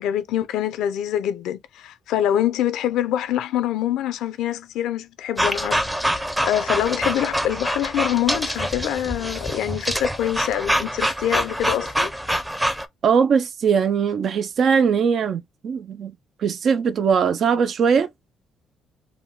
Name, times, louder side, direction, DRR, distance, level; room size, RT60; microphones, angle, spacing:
voice 1, 0.0-5.9 6.1-12.1, left 11 dB, 90° left, 0.6 m, -25 dB
sound 1, 5.4-12.9, equal, 5° right, 0.6 m, -25 dB
voice 2, 13.0-16.1 16.4-18.1, right 6 dB, 60° right, 0.5 m, -20 dB
3.5 x 2.2 x 3.7 m
cardioid pair, 90°, 0 cm